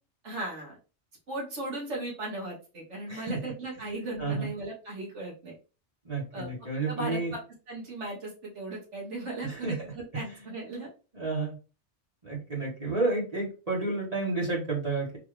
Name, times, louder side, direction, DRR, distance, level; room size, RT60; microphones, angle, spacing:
voice 1, 0.2-0.8 1.3-5.6 6.3-7.4 7.7-10.9, right 2 dB, 85° right, -3 dB, 1.9 m, -37 dB
voice 2, 3.1-3.5 3.8-3.9 4.2-4.5 6.0-7.3 9.4-9.8 11.1-11.6 12.2-15.2, right 3 dB, 35° right, -5 dB, 1.2 m, -31 dB
3.9 x 2.6 x 3.1 m, 0.33 s
omnidirectional pair, 1.2 m